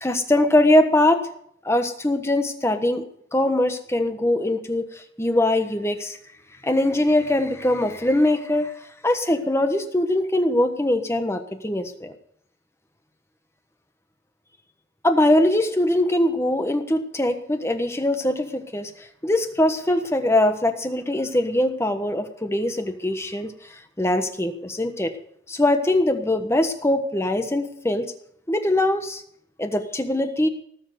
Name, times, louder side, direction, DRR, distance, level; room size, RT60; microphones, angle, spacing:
voice 1, 0.0-1.2 1.6-3.0 3.3-4.9 5.2-6.2 6.6-8.7 9.0-12.1 15.0-18.9 19.2-23.5 24.0-25.1 25.5-28.1 28.5-29.2 29.6-30.5, left 1 dB, 15° left, 7 dB, 1.2 m, -22 dB
18.5 x 7.2 x 7.8 m, 0.68 s
head